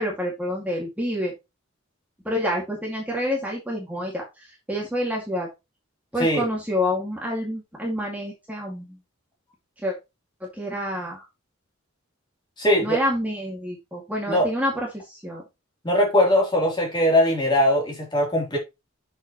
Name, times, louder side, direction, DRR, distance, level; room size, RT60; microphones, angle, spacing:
voice 1, 0.0-1.3 2.3-4.2 4.7-5.5 6.1-9.0 9.8-10.0 10.4-11.2 12.8-15.4, equal, 10° right, 2.2 m, -28 dB
voice 2, 12.6-13.0 14.3-14.5 15.8-18.6, left 1 dB, 20° left, 3.4 m, -20 dB
7.9 x 6.9 x 3.1 m
head